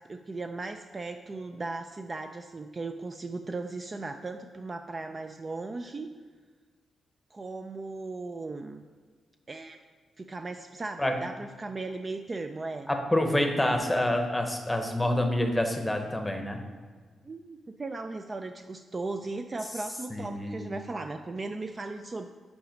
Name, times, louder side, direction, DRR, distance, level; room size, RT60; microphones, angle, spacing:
voice 1, 0.0-6.1 7.3-8.8 9.5-9.8 10.2-12.9 17.2-22.2, right 3 dB, 30° right, 6 dB, 0.3 m, -37 dB
voice 2, 12.9-16.6 20.1-20.7, left 1 dB, 10° left, 4 dB, 0.8 m, -27 dB
6.1 x 4.9 x 5.1 m, 1.5 s
cardioid pair, 100°, 0 cm